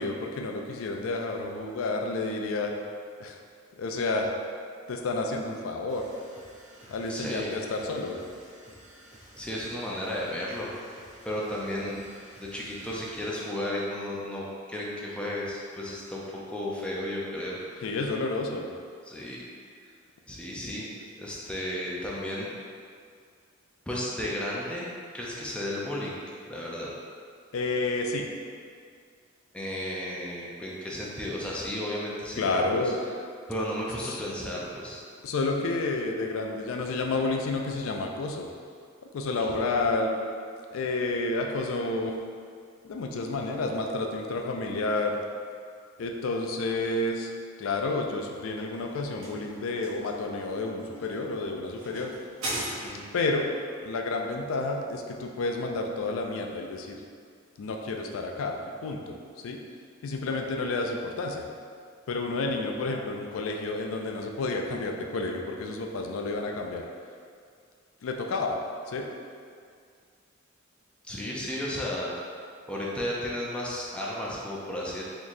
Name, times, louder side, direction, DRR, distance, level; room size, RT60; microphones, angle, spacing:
voice 1, 0.0-2.7 3.2-3.4 3.8-4.3 4.9-6.1 6.9-8.2 17.8-18.7 27.5-28.3 32.4-33.0 34.0-34.2 35.2-38.5 39.1-40.1 40.7-42.2 42.8-45.2 46.0-47.3 47.6-52.1 53.1-53.5 53.8-57.0 57.6-59.2 59.4-59.6 60.0-61.5 62.1-66.9 68.0-68.6 68.9-69.1, left 3 dB, 90° left, 2 dB, 0.4 m, -30 dB
sound 1, 5.9-13.5, right 1 dB, 35° right, 0.8 m, -52 dB
voice 2, 7.1-7.6 9.4-10.7 11.2-17.9 19.1-19.4 20.3-20.9 21.2-22.5 23.9-26.9 29.5-32.6 33.5-35.0 39.4-39.6 52.8-53.1 71.1-72.1 72.7-75.0, left 1 dB, 5° left, -5 dB, 0.5 m, -34 dB
sound 2, 48.3-53.3, right 1 dB, 90° right, 0.9 m, -39 dB
4.0 x 3.0 x 2.6 m, 2.2 s
head